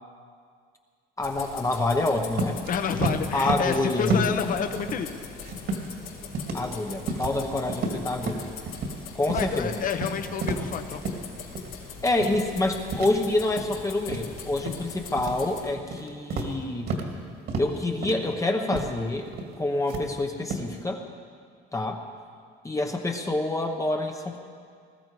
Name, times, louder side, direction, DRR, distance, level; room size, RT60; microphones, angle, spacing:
sound 1, 1.2-15.7, left 6 dB, 85° left, 3.4 m, -42 dB
voice 1, 1.2-2.6 3.3-4.2 6.5-8.5 9.1-9.8 12.0-16.9 17.6-19.3 19.6-21.0 21.7-22.0 22.6-24.4, left 2 dB, 15° left, 3 dB, 1.0 m, -27 dB
sound 2, 2.3-2.7 3.0-3.8 4.1-4.5 4.8-6.0 6.3-6.7 7.1-7.4 7.7-9.0 9.3-9.5 9.8-11.2 11.5-11.8 12.2-12.5 12.9-13.8 14.1-14.8 15.2-15.4 15.8-17.1 17.5-17.8 18.0-18.3 18.7-18.9 19.3-19.5 19.9-20.7, right 2 dB, 50° right, 2.2 m, -31 dB
voice 2, 2.7-5.1 9.3-11.0, left 7 dB, 40° left, 8 dB, 1.1 m, -29 dB
sound 3, 3.1-8.4, left 6 dB, 65° left, 3.6 m, -52 dB
20.0 x 13.0 x 4.9 m, 2.1 s
cardioid pair, 125°, 21 cm